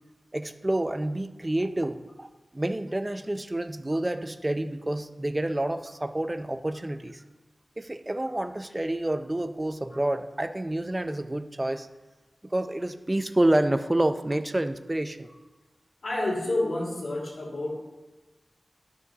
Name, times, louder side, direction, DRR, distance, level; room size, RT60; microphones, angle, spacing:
voice 1, 0.3-2.3 2.5-7.2 7.8-11.9 12.4-15.3, right 1 dB, 25° right, 9 dB, 0.5 m, -28 dB
voice 2, 16.0-17.7, left 2 dB, 90° left, -4 dB, 2.2 m, -29 dB
12.0 x 6.2 x 2.8 m, 1.1 s
wide cardioid pair, 60°, 0 cm